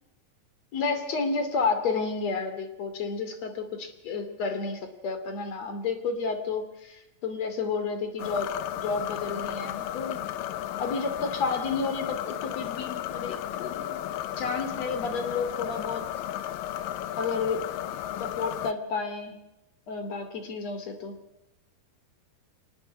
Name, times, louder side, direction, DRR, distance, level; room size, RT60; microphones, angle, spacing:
voice 1, 0.7-8.5 8.7-10.4 10.8-14.1 14.4-16.0 17.2-17.7 18.2-19.5 19.9-21.2, left 4 dB, 50° left, 8 dB, 3.8 m, -31 dB
sound 1, 8.2-18.7, left 12 dB, 75° left, 2.5 m, -34 dB
24.5 x 19.5 x 8.4 m, 0.90 s
omnidirectional pair, 4.2 m